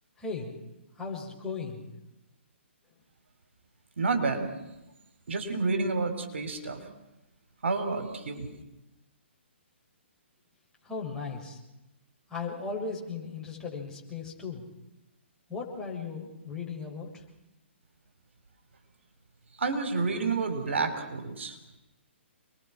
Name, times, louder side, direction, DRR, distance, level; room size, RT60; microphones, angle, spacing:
voice 1, 0.2-0.5 1.0-1.9 10.8-11.6 12.3-14.7 15.5-17.2, left 4 dB, 10° left, -3 dB, 7.4 m, -37 dB
voice 2, 4.0-4.5 5.3-6.8 7.6-8.5 19.6-21.6, right 4 dB, 70° right, 6 dB, 4.8 m, -29 dB
30.0 x 22.0 x 6.2 m, 0.94 s
hypercardioid pair, 140°, 7 cm